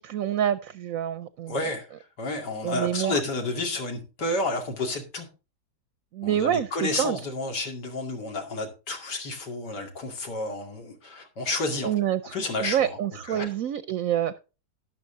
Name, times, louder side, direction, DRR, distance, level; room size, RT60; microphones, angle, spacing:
voice 1, 0.0-1.6 2.6-3.2 6.1-7.2 11.8-12.3 12.6-14.4, right 10 dB, 65° right, 13 dB, 1.0 m, -27 dB
voice 2, 1.5-1.9 2.2-5.3 6.2-11.9 12.3-13.0 13.3-13.5, left 2 dB, 80° left, 3 dB, 2.9 m, -30 dB
12.0 x 11.0 x 2.6 m, 0.31 s
omnidirectional pair, 1.8 m